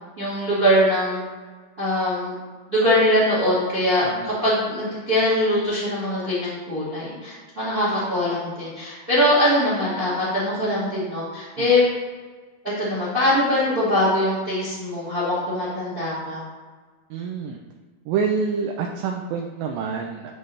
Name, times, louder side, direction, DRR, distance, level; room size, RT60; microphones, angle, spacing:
voice 1, 0.2-1.2 1.8-2.3 2.7-11.8 12.8-16.4, left 1 dB, 25° right, -8 dB, 1.3 m, -22 dB
voice 2, 4.0-4.4 11.6-11.7 17.1-17.6 18.1-20.3, right 5 dB, 80° right, 2 dB, 2.2 m, -27 dB
11.0 x 3.9 x 3.2 m, 1.4 s
omnidirectional pair, 4.4 m